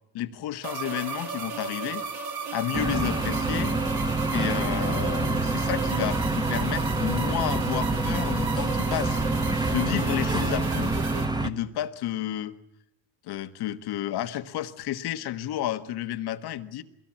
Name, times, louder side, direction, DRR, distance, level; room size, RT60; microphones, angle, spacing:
voice 1, 0.1-2.0 2.5-3.7 4.3-9.2 9.7-10.9 11.4-12.5 13.2-16.8, left 12 dB, 75° left, 10 dB, 1.5 m, -31 dB
sound 1, 0.6-11.3, right 5 dB, 70° right, 3.0 m, -34 dB
sound 2, 2.7-11.5, right 2 dB, 10° right, 1.3 m, -27 dB
22.0 x 18.0 x 8.7 m, 0.79 s
supercardioid pair, 85°, 39 cm